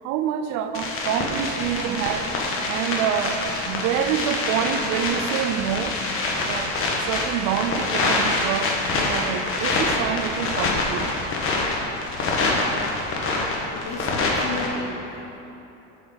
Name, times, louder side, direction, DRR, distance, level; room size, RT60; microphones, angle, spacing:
voice 1, 0.0-2.3 2.7-6.0 6.4-11.2, right 9 dB, 55° right, 8 dB, 0.6 m, -27 dB
sound 1, 0.7-14.7, left 2 dB, 40° left, 1.4 m, -25 dB
voice 2, 13.7-15.4, left 3 dB, 65° left, 1 dB, 1.4 m, -33 dB
8.7 x 4.8 x 6.4 m, 3.0 s
supercardioid pair, 125°, 35 cm